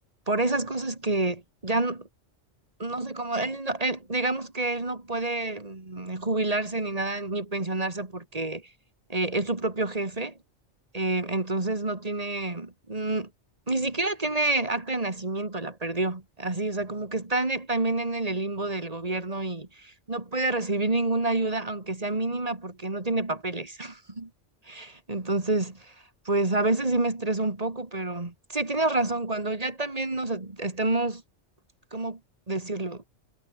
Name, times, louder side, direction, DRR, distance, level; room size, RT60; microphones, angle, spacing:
voice 1, 0.3-2.1 2.8-8.6 9.1-10.3 10.9-13.3 13.7-24.3 24.7-25.9 26.3-31.2 31.9-32.2 32.5-33.0, right 2 dB, 30° right, 2.4 m, -28 dB
omnidirectional pair, 1.2 m